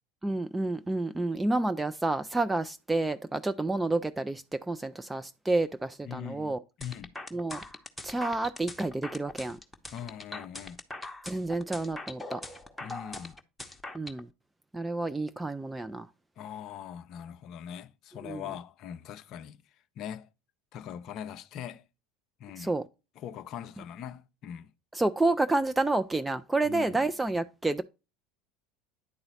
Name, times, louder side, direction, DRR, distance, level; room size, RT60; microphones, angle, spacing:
voice 1, 0.2-6.6 7.3-7.6 8.0-9.6 11.2-12.4 13.9-14.3 14.7-16.1 18.2-18.4 22.6-22.8 24.9-27.8, right 2 dB, 10° right, 0.3 m, -29 dB
voice 2, 6.0-7.1 9.9-10.8 12.8-13.4 16.4-19.6 20.0-20.3 20.7-21.8 22.4-22.7 23.2-24.7 26.6-27.1, left 9 dB, 45° left, 0.5 m, -41 dB
sound 1, 6.8-14.2, left 2 dB, 5° left, 0.9 m, -41 dB
9.8 x 3.9 x 4.0 m
figure-of-eight pair, 70°, 0 cm